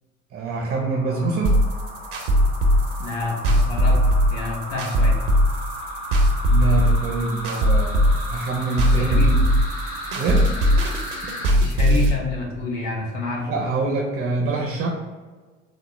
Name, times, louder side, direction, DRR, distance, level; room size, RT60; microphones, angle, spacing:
voice 1, 0.3-1.5 6.5-9.4 10.2-10.5 13.5-14.9, right 3 dB, 25° right, 0 dB, 0.6 m, -25 dB
sound 1, 0.6-11.5, equal, 45° left, 1.0 m, -35 dB
sound 2, 1.4-12.1, equal, 80° right, 0.7 m, -19 dB
voice 2, 3.0-4.0 4.3-5.1 8.9-9.3 10.0-10.1 11.6-13.5, left 3 dB, 75° left, -1 dB, 0.9 m, -28 dB
4.1 x 2.0 x 3.1 m, 1.4 s
hypercardioid pair, 65°, 37 cm